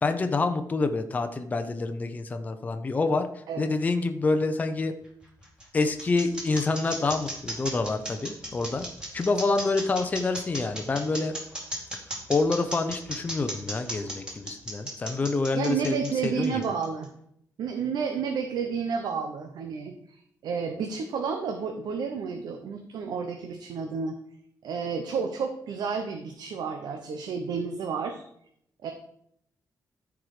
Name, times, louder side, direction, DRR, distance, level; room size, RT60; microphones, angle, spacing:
voice 1, 0.0-3.3 3.6-4.9 5.7-8.9 9.1-11.3 12.3-16.6, left 3 dB, 25° left, 7 dB, 0.6 m, -27 dB
sound 1, 5.0-17.0, right 1 dB, 10° right, 2.4 m, -36 dB
voice 2, 15.5-17.1 17.6-24.2 24.6-28.2 28.8-28.9, right 6 dB, 90° right, 5 dB, 0.9 m, -31 dB
14.0 x 4.8 x 4.9 m, 0.72 s
wide cardioid pair, 165°, 7 cm